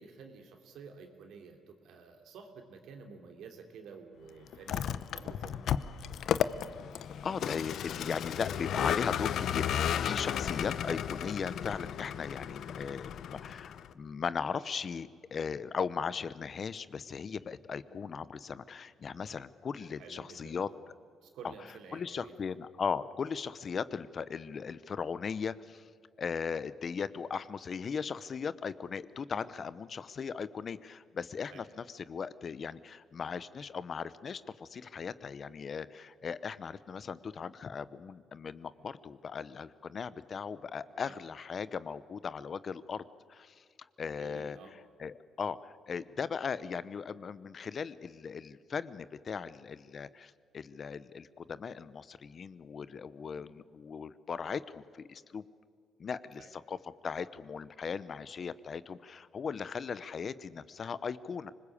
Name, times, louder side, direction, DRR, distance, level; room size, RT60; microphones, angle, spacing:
voice 1, 0.0-5.7 17.9-18.0 20.0-20.7 21.2-22.5 31.5-31.6 40.9-41.1 44.1-44.7 53.3-53.5 56.3-56.5, right 5 dB, 80° right, 4 dB, 3.1 m, -51 dB
Vehicle, 4.5-13.9, left 9 dB, 70° left, 0.8 m, -34 dB
voice 2, 7.2-20.7 21.4-21.5 21.9-25.9 26.2-43.0 43.3-43.6 44.0-44.6 45.0-55.4 56.0-56.8 57.0-61.5, left 6 dB, 45° left, 16 dB, 0.8 m, -38 dB
25.5 x 20.0 x 8.5 m, 2.1 s
cardioid pair, 90°, 0 cm